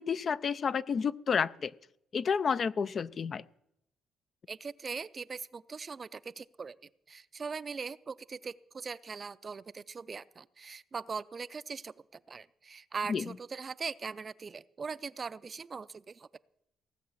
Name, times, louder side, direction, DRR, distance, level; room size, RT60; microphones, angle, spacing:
voice 1, 0.0-1.7 2.1-3.4 13.1-13.2, left 6 dB, 50° left, 16 dB, 0.4 m, -30 dB
voice 2, 4.5-6.8 7.1-11.9 12.3-16.4, right 5 dB, 35° right, 16 dB, 0.4 m, -40 dB
17.5 x 7.5 x 7.2 m, 0.81 s
cardioid pair, 90°, 0 cm